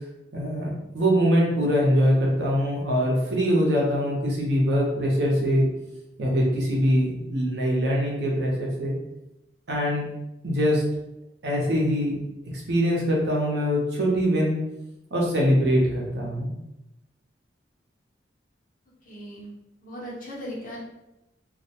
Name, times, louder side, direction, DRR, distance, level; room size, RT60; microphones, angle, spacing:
voice 1, 0.3-5.7 6.2-9.0 9.7-10.0 10.4-10.8 11.4-12.2 12.7-14.5 15.1-16.5, equal, 75° right, -3 dB, 0.7 m, -23 dB
voice 2, 19.0-19.5 19.8-20.8, equal, 50° left, -5 dB, 0.9 m, -37 dB
2.3 x 2.2 x 2.8 m, 0.91 s
head